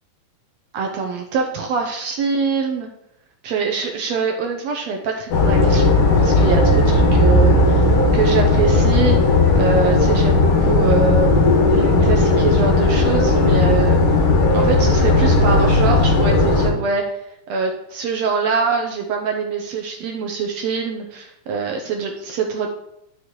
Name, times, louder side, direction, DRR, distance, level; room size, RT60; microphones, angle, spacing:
voice 1, 0.7-2.9 3.4-11.3 11.7-14.0 14.5-17.0 17.5-22.7, right 5 dB, 70° right, 2 dB, 1.7 m, -24 dB
sound 1, 5.3-16.7, left 2 dB, 75° left, 2.8 m, -15 dB
9.5 x 6.5 x 3.0 m, 0.79 s
omnidirectional pair, 3.7 m